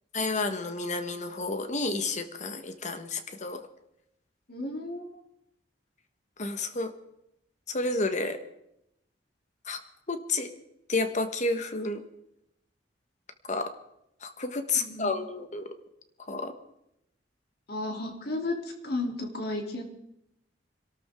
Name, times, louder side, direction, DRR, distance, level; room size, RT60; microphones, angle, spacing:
voice 1, 0.1-3.6 6.4-6.9 7.7-8.4 9.6-9.8 10.1-10.5 10.9-12.0 13.5-13.7 14.2-15.7 16.3-16.5, left 3 dB, 40° left, 8 dB, 1.5 m, -30 dB
voice 2, 4.5-5.2 14.7-15.1 17.7-19.8, left 2 dB, 60° left, 2 dB, 3.3 m, -33 dB
26.0 x 12.5 x 3.8 m, 0.80 s
head